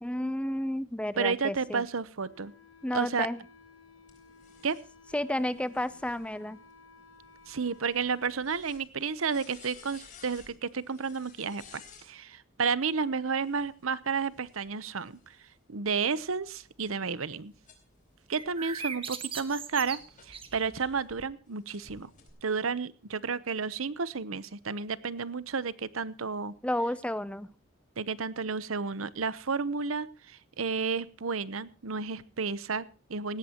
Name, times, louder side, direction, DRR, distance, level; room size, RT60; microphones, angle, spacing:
voice 1, 0.0-1.8 2.8-3.4 5.1-6.6 26.6-27.5, left 1 dB, 5° left, 16 dB, 0.6 m, -31 dB
voice 2, 1.2-2.5 2.9-3.3 4.6-4.8 7.5-15.2 15.7-17.5 18.3-20.0 20.3-22.1 22.4-26.5 28.0-33.4, right 5 dB, 85° right, 17 dB, 0.9 m, -32 dB
Wind instrument woodwind instrument, 2.2-8.4, left 4 dB, 90° left, 3.0 m, -56 dB
sound 1, 4.1-12.1 13.2-15.6 16.2-21.2 21.7-22.3, left 5 dB, 40° left, 4.2 m, -57 dB
sound 2, 18.3-21.0, right 6 dB, 25° right, 1.4 m, -40 dB
18.5 x 17.0 x 3.0 m, 0.36 s
head